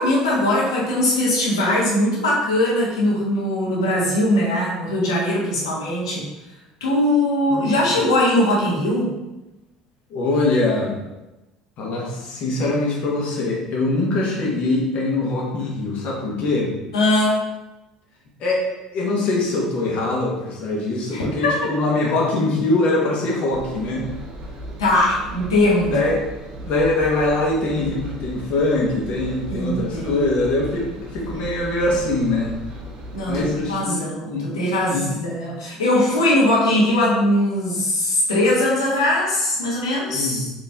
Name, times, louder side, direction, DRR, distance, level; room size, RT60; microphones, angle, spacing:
voice 1, 0.0-6.2 6.8-9.1 16.9-17.5 21.1-21.5 24.8-25.9 29.5-30.3 33.1-40.5, left 1 dB, 85° left, -5 dB, 1.3 m, -20 dB
voice 2, 7.5-7.9 10.1-11.0 11.8-16.7 18.4-24.1 25.8-26.2 26.6-32.5 33.3-34.5 34.9-35.1 40.1-40.5, left 2 dB, 55° left, -2 dB, 1.3 m, -23 dB
Engine, 23.5-33.7, right 1 dB, 45° right, 1.4 m, -36 dB
4.5 x 3.1 x 3.5 m, 1.0 s
hypercardioid pair, 65°, 3 cm